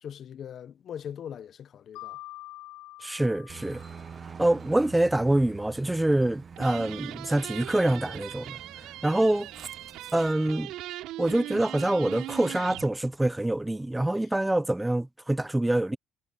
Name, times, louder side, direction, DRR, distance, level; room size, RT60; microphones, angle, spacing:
voice 1, 0.0-2.2, left 9 dB, 50° left, 0.7 m, -41 dB
Mallet percussion, 1.9-4.7, left 17 dB, 85° left, 7.4 m, -46 dB
voice 2, 3.0-3.8 4.4-8.6 9.0-9.5 10.1-10.7 11.2-16.0, right 1 dB, 5° right, 0.5 m, -25 dB
Aircraft, 3.5-10.3, right 6 dB, 30° right, 1.0 m, -46 dB
sound 1, 6.6-12.9, right 15 dB, 80° right, 4.3 m, -40 dB
cardioid pair, 130°, 0 cm